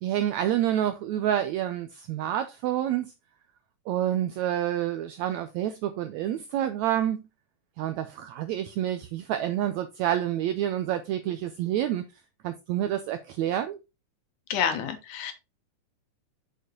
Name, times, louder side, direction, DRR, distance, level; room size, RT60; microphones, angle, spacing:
voice 1, 0.0-3.1 3.9-7.2 7.8-12.0 12.4-13.8, right 11 dB, 90° right, 1.6 m, -28 dB
voice 2, 14.5-15.3, left 8 dB, 75° left, 2.5 m, -28 dB
6.7 x 6.7 x 2.9 m
omnidirectional pair, 3.8 m